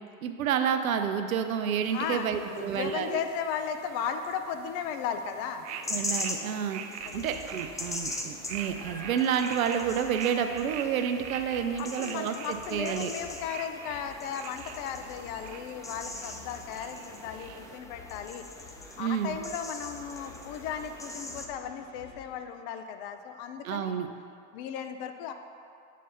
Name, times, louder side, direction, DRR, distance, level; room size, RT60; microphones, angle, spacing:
voice 1, 0.2-3.2 5.9-6.8 7.1-13.1 19.0-19.4 23.6-24.1, right 8 dB, 90° right, 7 dB, 0.5 m, -29 dB
sound 1, 1.8-17.8, right 8 dB, 40° right, 0.5 m, -44 dB
voice 2, 1.9-2.3 2.5-5.7 7.0-7.2 11.8-23.9 24.5-25.3, left 7 dB, 60° left, 7 dB, 0.6 m, -36 dB
sound 2, 5.7-21.5, left 2 dB, 10° left, 0.5 m, -41 dB
sound 3, 7.0-22.4, left 4 dB, 40° left, 1.6 m, -52 dB
7.4 x 3.3 x 5.5 m, 2.5 s
hypercardioid pair, 75°, 40 cm